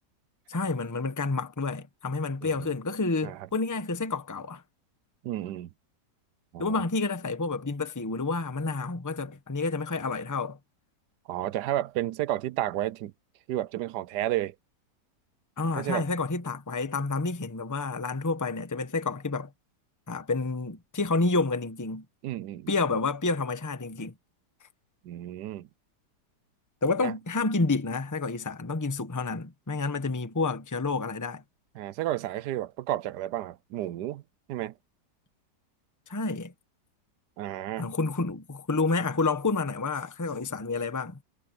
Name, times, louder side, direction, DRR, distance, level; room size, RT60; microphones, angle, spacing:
voice 1, 0.5-4.6 6.6-10.6 15.6-19.5 20.1-22.0 22.7-24.1 26.8-31.4 36.1-36.5 37.8-41.2, left 3 dB, 15° left, 1.0 m, -29 dB
voice 2, 5.2-5.7 6.5-6.8 11.3-13.1 13.5-14.5 15.7-16.0 22.2-22.7 25.0-25.7 27.0-27.1 31.8-34.2 34.5-34.7 37.4-37.9, right 13 dB, 75° right, 1.2 m, -31 dB
omnidirectional pair, 1.9 m